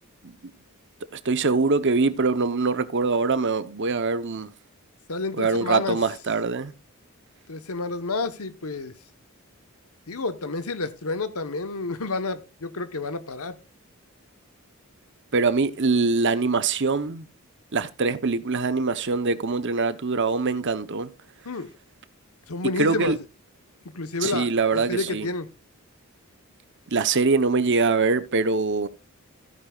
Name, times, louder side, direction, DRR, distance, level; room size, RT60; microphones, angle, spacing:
voice 1, 1.1-4.5 5.3-6.7 15.3-17.3 17.7-21.1 22.8-23.2 24.2-25.3 26.9-28.9, right 4 dB, 55° right, 0.9 m, -23 dB
voice 2, 5.1-6.0 7.5-8.9 10.1-13.6 21.4-21.7 22.5-23.1 23.9-25.5, left 3 dB, 75° left, 1.2 m, -30 dB
15.0 x 9.5 x 2.4 m
head